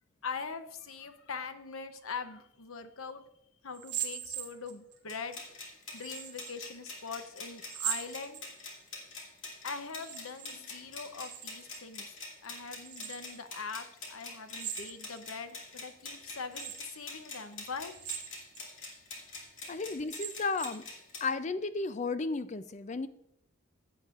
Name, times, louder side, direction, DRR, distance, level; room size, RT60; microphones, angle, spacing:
voice 1, 0.2-3.2 3.6-5.4 5.9-8.4 9.6-12.1 12.4-17.9, left 5 dB, 90° left, 9 dB, 0.8 m, -42 dB
sound 1, 3.7-5.0 6.0-6.6 7.6-8.8 9.8-10.6 10.8-11.8 12.8-13.4 14.5-15.3 15.8-15.9 16.5-17.0 17.9-18.6 19.1-19.2 19.9-20.9, right 10 dB, 55° right, 1.4 m, -40 dB
sound 2, 5.1-21.3, left 3 dB, 65° left, 2.5 m, -46 dB
voice 2, 19.7-20.8 21.2-23.1, left 4 dB, 35° left, 12 dB, 0.4 m, -33 dB
16.0 x 8.1 x 2.5 m, 0.74 s
head